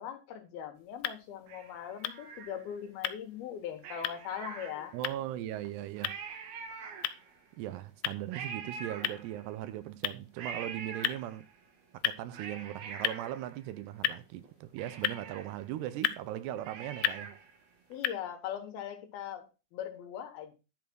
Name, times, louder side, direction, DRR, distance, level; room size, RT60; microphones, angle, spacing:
voice 1, 0.0-5.0 17.9-20.5, left 9 dB, 70° left, 2.7 m, -40 dB
sound 1, 0.7-18.1, left 13 dB, 85° left, 2.9 m, -39 dB
Cat, 1.5-2.9 3.8-5.2 5.6-5.7 6.0-7.5 8.3-9.7 10.4-11.6 12.1-14.1 14.4-14.5 14.8-17.6 17.9-18.0, right 6 dB, 65° right, 3.1 m, -45 dB
voice 2, 4.9-6.2 7.6-11.5 11.9-17.3, right 13 dB, 80° right, 2.6 m, -39 dB
11.0 x 4.8 x 6.1 m
omnidirectional pair, 5.2 m